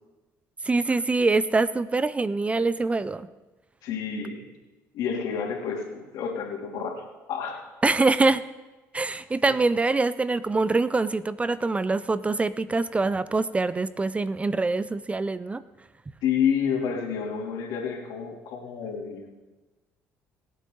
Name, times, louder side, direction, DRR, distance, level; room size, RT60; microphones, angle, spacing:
voice 1, 0.6-3.3 7.8-8.4 8.9-15.6, right 3 dB, 20° right, 16 dB, 0.5 m, -24 dB
voice 2, 3.8-4.4 4.9-7.6 16.2-19.3, left 7 dB, 75° left, 1 dB, 3.0 m, -29 dB
25.0 x 8.3 x 3.9 m, 1.2 s
supercardioid pair, 80°, 6 cm